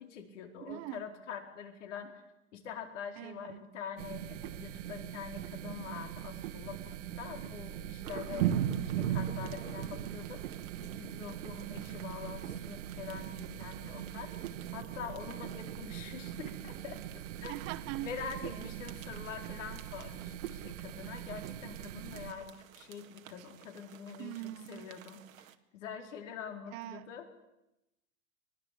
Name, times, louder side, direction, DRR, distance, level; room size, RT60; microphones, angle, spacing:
voice 1, 0.0-2.2 2.5-10.4 10.9-14.3 14.7-17.5 18.0-24.3 24.7-25.5 25.7-27.5, left 7 dB, 65° left, 4.6 m, -45 dB
voice 2, 0.7-1.0 3.2-3.7 8.3-8.7 17.5-18.1 18.4-18.7 23.4-23.5 24.2-24.8 26.7-27.1, right 16 dB, 35° right, 1.2 m, -42 dB
sound 1, 4.0-22.3, right 11 dB, 65° right, 1.7 m, -39 dB
sound 2, 8.0-25.5, right 9 dB, 90° right, 1.9 m, -50 dB
22.5 x 22.5 x 8.6 m
supercardioid pair, 150°, 39 cm